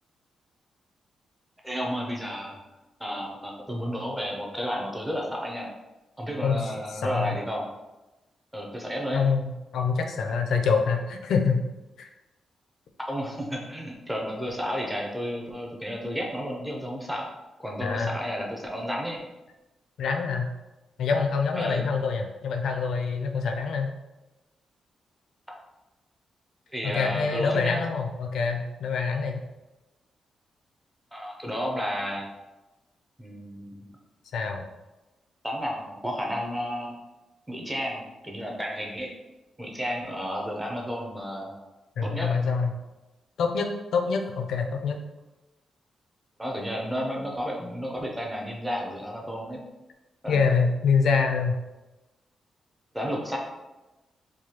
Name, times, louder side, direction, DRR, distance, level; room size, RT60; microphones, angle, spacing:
voice 1, 1.6-2.5 3.0-5.7 6.2-7.7 8.5-9.2 13.1-17.3 17.6-19.2 21.6-21.9 26.7-27.8 31.1-32.3 33.2-33.8 35.4-37.0 37.5-39.1 39.6-41.5 42.0-42.3 46.4-49.6 50.2-50.5 52.9-53.4, equal, 5° right, -1 dB, 0.6 m, -32 dB
voice 2, 6.9-7.3 9.1-11.6 12.0-12.1 17.8-18.2 20.0-20.5 21.0-23.9 26.8-29.4 34.3-34.6 42.0-42.7 43.4-45.0 50.3-51.6, left 5 dB, 75° left, 4 dB, 0.4 m, -25 dB
4.7 x 2.3 x 2.8 m, 1.1 s
wide cardioid pair, 165°, 0 cm